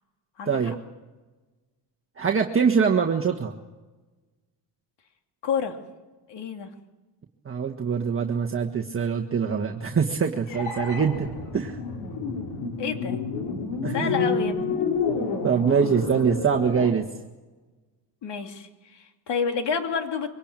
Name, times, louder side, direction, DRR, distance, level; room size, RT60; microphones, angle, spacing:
voice 1, 2.2-3.5 7.4-11.3 11.5-11.8 13.8-14.1 15.4-17.0, right 6 dB, 25° right, 0 dB, 1.6 m, -23 dB
voice 2, 5.4-5.8 6.3-6.7 12.8-13.2 13.9-14.7 18.2-20.3, left 6 dB, 60° left, 5 dB, 2.9 m, -29 dB
sound 1, 10.5-16.9, left 4 dB, 85° left, 4.7 m, -29 dB
24.0 x 18.0 x 9.0 m, 1.2 s
cardioid pair, 100°, 47 cm